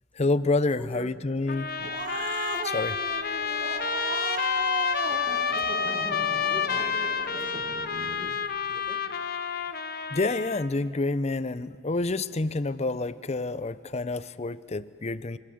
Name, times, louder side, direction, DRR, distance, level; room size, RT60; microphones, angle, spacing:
voice 1, 0.2-1.7 2.6-3.0 10.1-15.4, left 3 dB, 35° left, 16 dB, 0.7 m, -28 dB
voice 2, 0.7-1.1 5.5-7.7 8.1-9.0, equal, 10° left, 3 dB, 1.8 m, -45 dB
Trumpet, 1.5-10.7, left 7 dB, 55° left, 1.1 m, -29 dB
Growling, 1.5-8.3, right 4 dB, 45° right, 0.7 m, -36 dB
26.5 x 24.5 x 7.9 m, 2.5 s
head